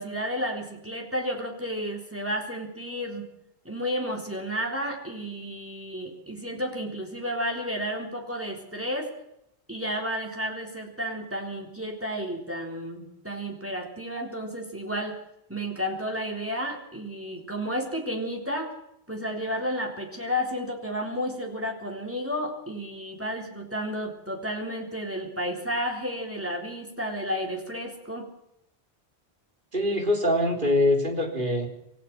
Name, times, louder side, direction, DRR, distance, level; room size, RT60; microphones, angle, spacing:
voice 1, 0.0-3.3 3.7-9.1 9.7-15.2 15.5-18.7 19.1-28.3, equal, 10° right, 1 dB, 3.7 m, -32 dB
voice 2, 29.7-31.7, left 1 dB, 50° right, 2 dB, 3.9 m, -23 dB
27.0 x 16.5 x 5.9 m, 0.79 s
omnidirectional pair, 1.1 m